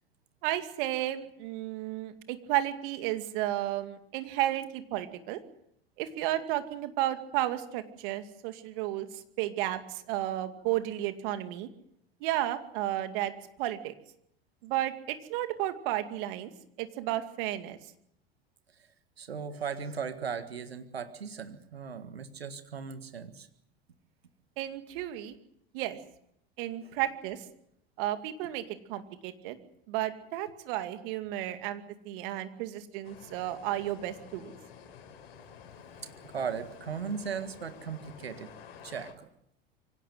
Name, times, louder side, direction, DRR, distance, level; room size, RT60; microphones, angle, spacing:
voice 1, 0.4-5.4 6.0-11.7 12.2-13.3 13.6-13.9 14.6-16.5 16.8-17.8 24.6-25.4 25.7-26.0 26.6-27.4 28.0-29.6 29.9-34.5, right 14 dB, 60° right, 8 dB, 2.4 m, -33 dB
voice 2, 19.2-23.5 26.8-26.9 36.0-38.5 38.8-39.3, right 6 dB, 90° right, 9 dB, 1.8 m, -37 dB
sound 1, 33.0-39.1, left 7 dB, 70° left, 4.3 m, -51 dB
24.5 x 17.5 x 7.9 m, 0.73 s
hypercardioid pair, 80°, 30 cm